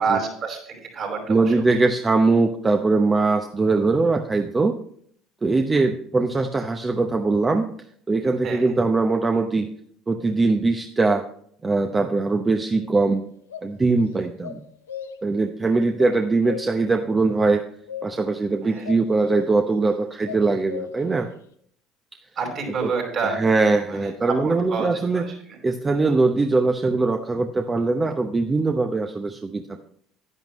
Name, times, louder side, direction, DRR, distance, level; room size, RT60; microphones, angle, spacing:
voice 1, 0.0-1.8 8.4-8.7 18.6-18.9 22.3-23.4 23.9-25.6, right 5 dB, 50° right, 0 dB, 5.0 m, -29 dB
voice 2, 1.3-4.8 5.4-7.7 8.1-9.7 10.1-11.2 11.6-13.2 13.6-14.6 15.2-17.7 18.0-21.3 22.8-22.9 23.4-25.2 25.6-29.8, right 3 dB, 25° right, 5 dB, 0.8 m, -21 dB
sound 1, 12.8-13.0 13.5-13.6 14.4-15.4 16.0-16.9 17.4-18.4 18.8-19.8 20.2-21.2, left 8 dB, 90° left, 0.7 m, -36 dB
10.5 x 10.5 x 3.1 m, 0.64 s
hypercardioid pair, 65°, 0 cm